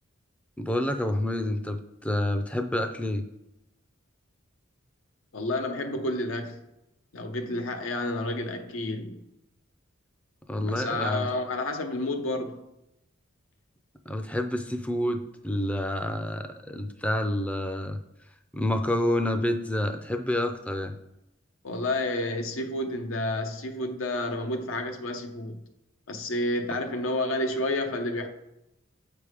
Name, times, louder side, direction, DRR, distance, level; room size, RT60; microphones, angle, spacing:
voice 1, 0.6-3.2 10.5-11.3 14.1-18.0 18.5-20.9, left 1 dB, 5° left, 7 dB, 0.4 m, -28 dB
voice 2, 5.3-6.6 7.1-9.2 10.5-12.6 21.6-25.6 26.1-28.3, left 1 dB, 80° left, 5 dB, 0.7 m, -30 dB
7.2 x 3.4 x 4.9 m, 0.89 s
head